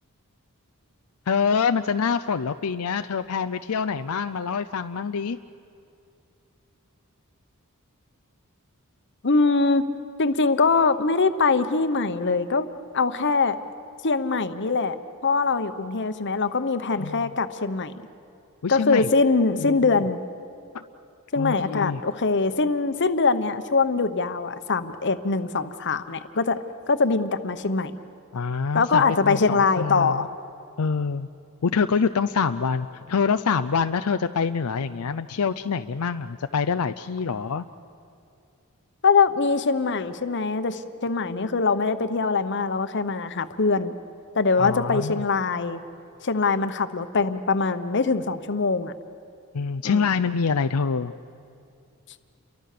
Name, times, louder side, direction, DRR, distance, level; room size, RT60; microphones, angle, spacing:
voice 1, 1.3-5.4 17.0-17.3 18.6-19.1 19.6-20.0 20.7-20.8 21.4-22.0 28.3-30.3 30.8-31.3 31.6-37.6 41.3-41.5 44.6-45.2 49.5-51.1, left 5 dB, 85° left, 9 dB, 0.5 m, -26 dB
voice 2, 9.2-9.8 10.2-12.7 12.9-13.6 14.0-15.0 15.2-17.9 18.7-20.2 21.3-26.6 26.9-27.9 28.7-30.3 39.0-43.9 44.3-45.8 46.2-48.9 49.8-50.0, left 4 dB, 55° left, 11 dB, 1.0 m, -23 dB
29.5 x 23.5 x 6.8 m, 2.6 s
head